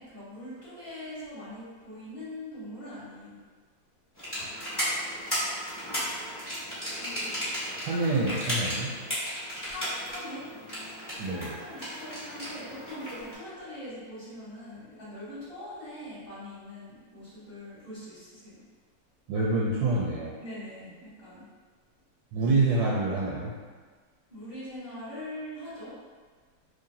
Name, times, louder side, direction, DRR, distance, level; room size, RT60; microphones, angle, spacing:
voice 1, 0.0-3.4 9.6-10.4 10.8-18.6 20.4-21.4 24.3-25.9, left 1 dB, 30° left, -14 dB, 1.4 m, -42 dB
sound 1, 4.2-13.3, equal, 15° left, 1.1 m, -34 dB
voice 2, 7.8-8.9 11.2-11.6 19.3-20.4 22.3-23.5, right 2 dB, 85° right, -4 dB, 1.3 m, -27 dB
3.8 x 3.1 x 2.7 m, 1.5 s
omnidirectional pair, 1.9 m